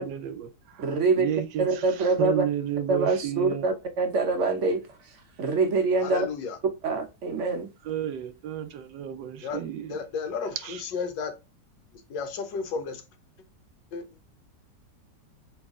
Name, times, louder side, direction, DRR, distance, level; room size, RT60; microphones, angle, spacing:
voice 1, 0.0-3.7 7.8-10.0 10.6-10.8, right 10 dB, 85° right, 1.3 m, -32 dB
voice 2, 0.8-1.3 1.6-2.5 2.9-4.8 5.4-6.3 6.8-7.7, right 3 dB, 60° right, 0.8 m, -25 dB
voice 3, 6.0-6.6 9.4-9.6 9.9-11.4 11.9-13.0 13.9-14.1, left 5 dB, 80° left, 1.5 m, -33 dB
3.3 x 3.2 x 3.5 m
omnidirectional pair, 1.9 m